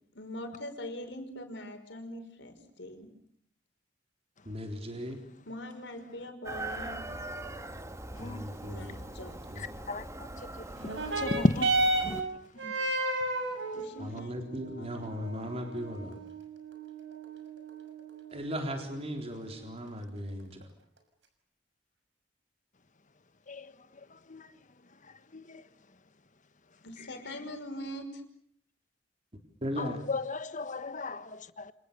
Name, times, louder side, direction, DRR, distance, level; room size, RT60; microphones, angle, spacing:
voice 1, 0.1-3.1 5.5-7.0 8.6-9.4 13.7-15.1 26.8-28.2, left 1 dB, 70° left, 5.7 m, -42 dB
voice 2, 4.5-5.2 8.2-9.0 9.5-9.7 14.0-16.2 18.3-20.6 29.6-30.0, equal, 35° right, 4.0 m, -37 dB
Chicken rooster, 6.4-12.2, right 2 dB, 15° right, 1.9 m, -41 dB
voice 3, 9.6-10.0 11.2-11.7 12.0-12.2 12.6-12.7 23.5-23.7 24.3-24.4 25.3-25.6 29.8-31.7, left 2 dB, 45° left, 1.4 m, -33 dB
sound 1, 10.8-19.8 20.6-20.7, right 2 dB, 80° right, 6.2 m, -34 dB
29.5 x 26.5 x 6.9 m
head